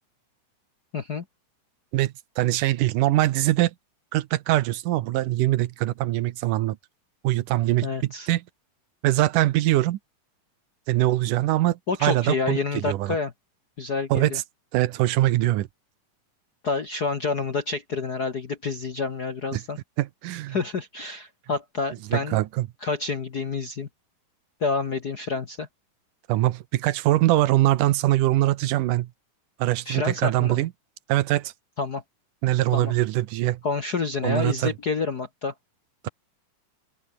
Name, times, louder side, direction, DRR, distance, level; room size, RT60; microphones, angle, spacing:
voice 1, 0.9-1.2 7.8-8.3 11.9-13.3 13.8-14.4 16.6-19.8 20.5-22.4 22.8-23.9 24.6-25.7 29.9-30.6 31.8-32.0 32.7-32.9 33.6-35.5, left 4 dB, 50° left, 1.3 m, -28 dB
voice 2, 1.9-3.7 4.1-6.8 7.2-8.4 9.0-10.0 10.9-13.2 14.1-14.4 14.7-15.7 19.5-19.6 20.0-20.6 22.1-22.7 26.3-29.1 29.6-30.7 31.1-31.5 32.4-33.6 34.2-34.7, right 15 dB, 80° right, 2.4 m, -23 dB
open air
omnidirectional pair, 3.7 m